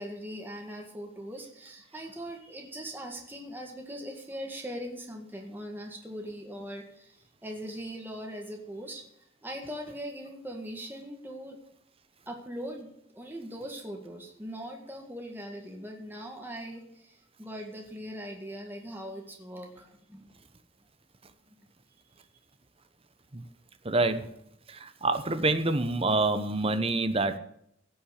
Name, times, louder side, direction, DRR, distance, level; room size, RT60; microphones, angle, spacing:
voice 1, 0.0-9.0 9.4-11.6 12.3-20.3, equal, 10° right, 1 dB, 1.9 m, -40 dB
voice 2, 23.8-24.3 24.7-27.4, right 2 dB, 30° right, 10 dB, 1.0 m, -27 dB
16.5 x 6.1 x 6.6 m, 0.74 s
head